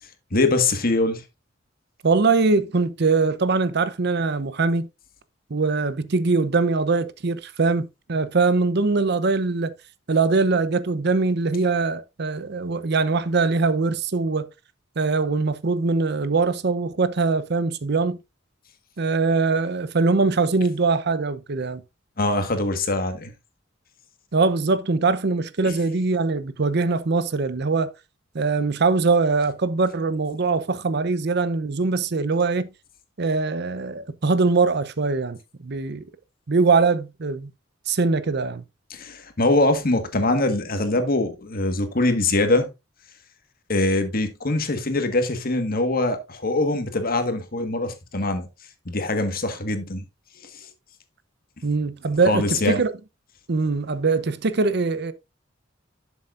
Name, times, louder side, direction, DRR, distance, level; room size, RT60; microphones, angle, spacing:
voice 1, 0.3-1.2 22.2-23.3 38.9-42.7 43.7-48.5 48.8-50.0 50.4-50.7 52.2-52.8, left 2 dB, 50° left, 1.6 m, -23 dB
voice 2, 2.0-4.9 5.5-9.7 10.1-14.5 15.0-18.2 19.0-21.8 24.3-27.9 28.3-32.7 33.2-36.0 36.5-37.5 37.9-38.6 51.6-52.9 53.5-55.1, right 4 dB, 60° right, 0.7 m, -22 dB
11.0 x 7.2 x 2.5 m
head